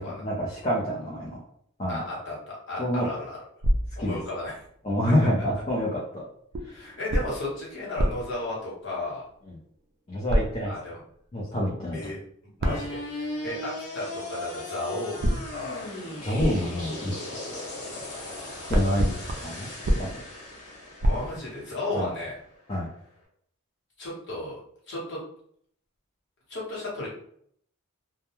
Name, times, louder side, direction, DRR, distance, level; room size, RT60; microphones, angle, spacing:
voice 1, 0.0-1.4 1.8-2.0 2.8-3.1 4.0-4.2 4.8-6.2 6.7-6.9 10.1-10.7 11.3-12.1 12.6-12.7 16.2-17.1 18.7-19.7 20.0-20.2 21.9-22.1 22.7-22.9, equal, 25° left, -5 dB, 0.5 m, -27 dB
voice 2, 1.9-3.4 3.9-4.6 6.7-9.3 10.6-11.0 11.9-12.2 12.6-15.9 21.0-22.4 24.0-24.6 24.9-25.2 26.5-27.1, left 2 dB, 55° left, -5 dB, 1.1 m, -34 dB
sound 1, 3.6-4.8 6.5-9.4 10.3-11.1 12.6-13.7 15.2-18.1 18.3-22.0, equal, 45° right, 0.4 m, -30 dB
sound 2, 12.6-22.7, left 1 dB, 80° left, 0.8 m, -38 dB
2.2 x 2.2 x 3.0 m, 0.66 s
head